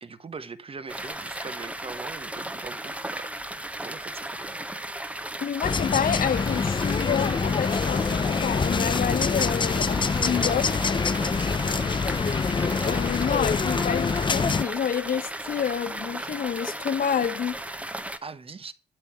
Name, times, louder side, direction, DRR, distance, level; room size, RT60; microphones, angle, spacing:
voice 1, 0.0-3.3 3.8-4.6 11.1-12.0 18.2-18.7, right 4 dB, 35° right, 1.2 m, -41 dB
sound 1, 0.9-18.2, right 1 dB, 10° right, 1.1 m, -35 dB
voice 2, 5.4-10.8 12.8-17.5, left 8 dB, 55° left, 1.0 m, -28 dB
sound 2, 5.6-14.6, left 5 dB, 30° left, 0.6 m, -25 dB
12.5 x 5.6 x 8.5 m
cardioid pair, 120°, 17 cm